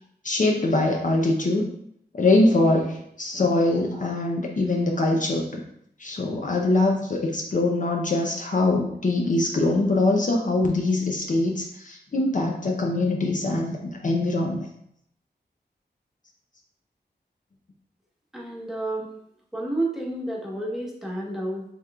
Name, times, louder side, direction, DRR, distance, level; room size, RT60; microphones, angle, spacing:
voice 1, 0.2-1.7 2.1-5.6 6.0-14.7, left 2 dB, 50° left, 0 dB, 0.6 m, -23 dB
voice 2, 18.3-19.1 19.5-21.6, right 1 dB, ahead, -3 dB, 1.1 m, -30 dB
7.0 x 3.0 x 2.3 m, 0.73 s
wide cardioid pair, 85°, 17 cm